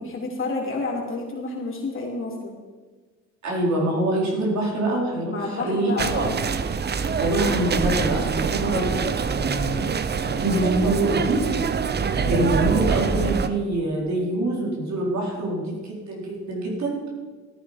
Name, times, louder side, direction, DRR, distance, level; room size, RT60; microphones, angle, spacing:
voice 1, 0.0-2.6 5.3-6.5 12.1-12.4, left 3 dB, 45° left, -2 dB, 3.3 m, -30 dB
voice 2, 3.4-5.9 7.2-11.4 12.2-17.1, right 1 dB, 65° right, -2 dB, 4.2 m, -25 dB
sound 1, 6.0-13.5, right 6 dB, 35° right, 0.7 m, -25 dB
13.5 x 9.6 x 5.2 m, 1.4 s
cardioid pair, 90°, 30 cm